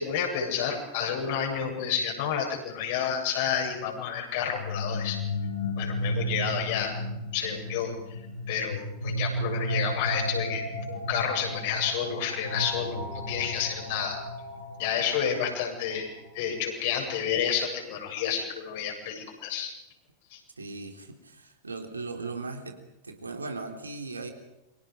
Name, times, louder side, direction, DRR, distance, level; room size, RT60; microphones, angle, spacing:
voice 1, 0.0-5.2 5.8-6.9 7.3-8.2 8.5-14.2 14.8-16.1 16.3-19.7 20.3-20.4, left 8 dB, 50° left, 1 dB, 8.0 m, -30 dB
sound 1, 4.4-16.3, left 1 dB, 80° left, 6.5 m, -34 dB
voice 2, 20.6-24.3, right 3 dB, 80° right, 4 dB, 3.4 m, -38 dB
29.5 x 25.0 x 5.3 m, 0.89 s
figure-of-eight pair, 90°, 0 cm